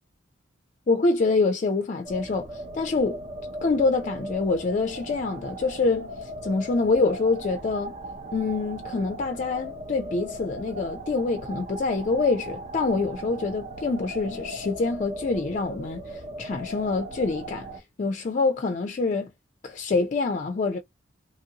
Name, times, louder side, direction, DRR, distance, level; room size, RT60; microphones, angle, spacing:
voice 1, 0.9-3.2 3.6-8.0 8.3-19.3 19.6-20.8, left 3 dB, 40° left, 0.4 m, -26 dB
sound 1, 2.0-17.8, right 1 dB, 40° right, 0.6 m, -38 dB
2.8 x 2.6 x 2.8 m
head